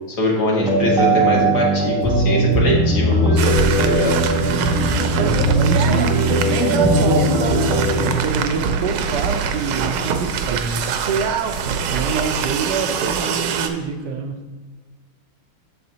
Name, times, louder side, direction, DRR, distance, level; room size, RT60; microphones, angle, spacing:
voice 1, 0.2-4.2, left 1 dB, 50° left, -3 dB, 2.3 m, -22 dB
sound 1, 0.6-8.2, right 1 dB, 5° right, 1.0 m, -19 dB
sound 2, 3.4-13.7, right 7 dB, 90° right, 1.5 m, -23 dB
voice 2, 5.1-10.9 11.9-14.4, right 4 dB, 65° right, 4 dB, 1.2 m, -26 dB
8.4 x 7.0 x 2.8 m, 1.3 s
omnidirectional pair, 2.3 m